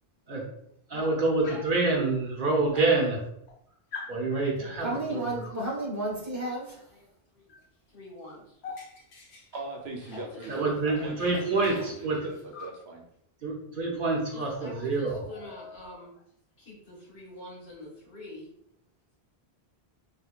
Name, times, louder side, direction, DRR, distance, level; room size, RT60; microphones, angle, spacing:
voice 1, 0.9-3.2 4.1-5.3 10.5-12.2 13.4-15.2, right 3 dB, 55° right, -2 dB, 0.9 m, -27 dB
Dog, 1.4-1.8 2.7-2.8 3.0-3.6 3.9-4.2 5.4-5.7 7.5-7.7 7.9-10.7 11.0-12.8 14.1-14.2 14.5-14.7 15.0-16.2, left 4 dB, 85° left, 1.0 m, -46 dB
voice 2, 4.1-5.4 6.9-7.5 7.9-8.6 10.1-10.7 13.9-14.0 14.3-16.1 16.6-18.5, left 1 dB, 60° left, -5 dB, 1.5 m, -45 dB
voice 3, 4.8-6.8, right 2 dB, 15° right, -4 dB, 1.1 m, -32 dB
voice 4, 9.5-13.0, right 3 dB, 80° right, 1 dB, 1.0 m, -41 dB
4.4 x 2.7 x 2.4 m, 0.75 s
omnidirectional pair, 1.1 m